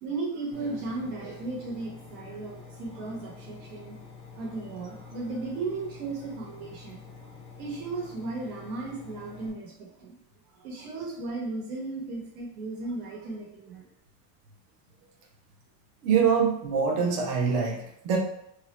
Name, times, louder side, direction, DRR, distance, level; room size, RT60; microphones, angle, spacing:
voice 1, 0.0-4.0 4.3-7.3 7.6-10.1 10.5-13.9, right 3 dB, 65° right, -3 dB, 0.9 m, -36 dB
Engine, 0.5-9.5, left 5 dB, 30° left, 0.4 m, -47 dB
voice 2, 16.0-18.2, right 6 dB, 35° right, 0 dB, 0.5 m, -24 dB
2.4 x 2.1 x 3.9 m, 0.75 s
cardioid pair, 170°, 47 cm